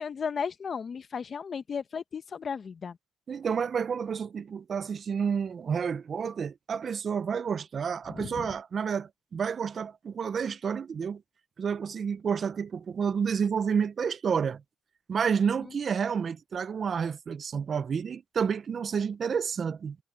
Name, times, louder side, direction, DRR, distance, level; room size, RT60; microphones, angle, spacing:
voice 1, 0.0-3.0 8.2-8.5, left 6 dB, 45° left, 1.1 m, -35 dB
voice 2, 3.3-11.2 11.6-14.6 15.1-20.0, right 6 dB, 50° right, 0.5 m, -30 dB
cardioid pair, 90°, 0 cm